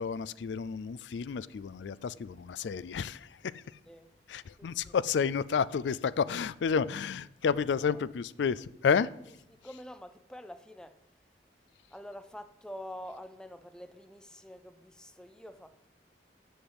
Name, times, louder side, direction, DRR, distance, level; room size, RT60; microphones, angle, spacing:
voice 1, 0.0-3.6 4.3-9.1, left 6 dB, 80° left, 0.4 m, -31 dB
voice 2, 4.6-5.0 7.8-8.0 9.5-11.3 11.9-15.9, equal, 5° left, 0.5 m, -47 dB
7.3 x 6.9 x 7.8 m
head